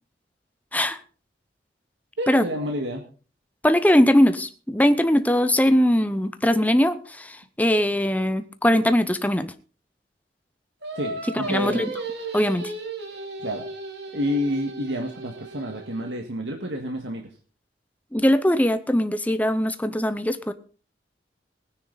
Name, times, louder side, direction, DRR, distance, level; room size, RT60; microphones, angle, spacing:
voice 1, 2.2-3.0 11.0-11.8 13.4-13.6 14.1-17.3, equal, 85° right, 2 dB, 1.9 m, -29 dB
voice 2, 3.6-9.5 11.4-11.9 12.3-12.7 18.1-20.5, equal, 10° left, 10 dB, 0.8 m, -21 dB
Singing, 10.8-16.2, right 2 dB, 65° right, 3.1 m, -35 dB
19.0 x 10.0 x 4.1 m, 0.39 s
head